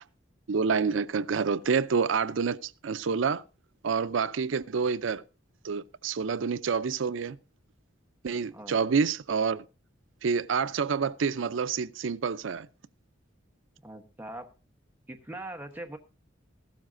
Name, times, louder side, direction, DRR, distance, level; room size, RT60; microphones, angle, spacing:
voice 1, 0.5-3.4 3.8-5.2 5.6-7.4 8.2-9.6 10.2-12.7, right 5 dB, 75° right, 0.5 m, -28 dB
voice 2, 13.8-14.5 15.1-16.0, right 1 dB, 10° right, 1.0 m, -41 dB
15.5 x 12.5 x 2.6 m
head